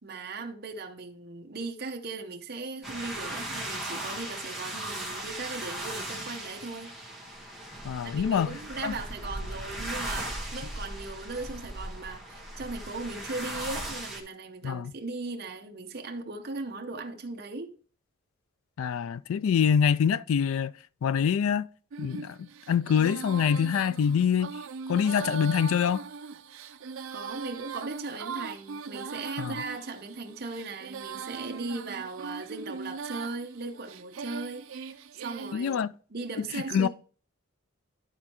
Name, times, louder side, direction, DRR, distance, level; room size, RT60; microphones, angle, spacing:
voice 1, 0.0-6.9 8.0-17.7 27.1-35.8 36.1-36.9, right 3 dB, 45° right, 0.8 m, -38 dB
sound 1, 2.8-14.2, right 1 dB, ahead, 1.3 m, -37 dB
voice 2, 7.8-8.6 8.8-8.9 14.6-14.9 18.8-20.7 21.0-21.7 22.0-24.5 24.9-26.0 29.4-29.6 35.5-35.9 36.7-36.9, left 7 dB, 80° left, 0.3 m, -25 dB
Female singing, 21.9-35.5, right 5 dB, 75° right, 0.5 m, -40 dB
12.0 x 4.3 x 3.0 m
head